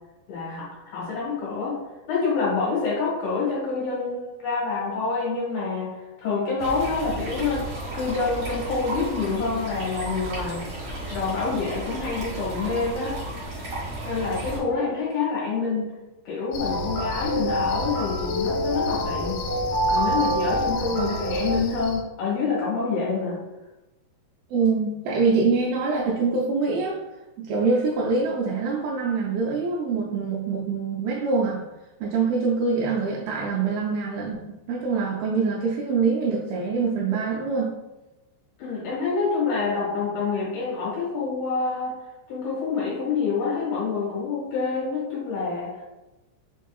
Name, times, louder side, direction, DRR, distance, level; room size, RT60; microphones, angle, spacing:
voice 1, 0.3-1.8 2.1-7.7 7.9-10.6 11.1-13.1 14.1-15.9 16.3-19.4 19.9-23.4 38.6-42.0 42.3-45.7, left 4 dB, 70° left, -5 dB, 2.9 m, -27 dB
sound 1, 6.6-14.6, right 1 dB, 65° right, 1.2 m, -34 dB
Cricket, 16.5-22.0, left 2 dB, 85° left, 2.9 m, -34 dB
sound 2, 16.6-21.6, right 1 dB, 55° left, 2.5 m, -27 dB
voice 2, 24.5-27.0 27.4-31.6 32.0-37.7, right 4 dB, 85° right, -3 dB, 2.2 m, -24 dB
6.2 x 3.6 x 2.3 m, 1.0 s
omnidirectional pair, 5.0 m